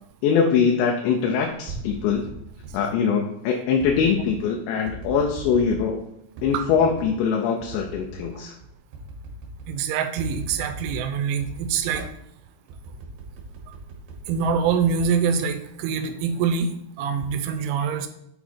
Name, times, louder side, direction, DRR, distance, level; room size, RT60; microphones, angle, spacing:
voice 1, 0.2-2.3 2.7-6.0 6.4-8.5, left 6 dB, 80° left, 1 dB, 2.8 m, -22 dB
sound 1, 1.4-2.8 3.8-4.4 4.9-5.9 6.4-7.1 7.6-8.3 8.6-8.7 8.9-9.8 10.2-11.1 11.4-12.1 12.7-15.8 16.2-16.6, right 1 dB, 65° right, 2.9 m, -38 dB
voice 2, 9.7-12.1 14.3-16.7 17.0-18.1, right 6 dB, 85° right, 7 dB, 3.0 m, -24 dB
8.3 x 4.1 x 4.4 m, 0.79 s
omnidirectional pair, 5.6 m